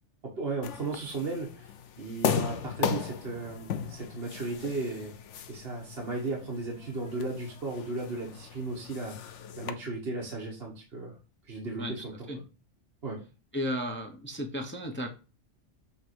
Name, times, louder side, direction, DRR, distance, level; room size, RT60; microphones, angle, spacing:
voice 1, 0.2-5.1 5.5-11.2 11.5-12.3 13.0-13.2, right 3 dB, 55° right, -2 dB, 1.5 m, -36 dB
sound 1, 0.6-9.7, left 8 dB, 75° left, 1.0 m, -36 dB
voice 2, 13.5-15.1, equal, 10° left, 2 dB, 0.8 m, -34 dB
7.4 x 3.2 x 4.6 m, 0.32 s
omnidirectional pair, 1.2 m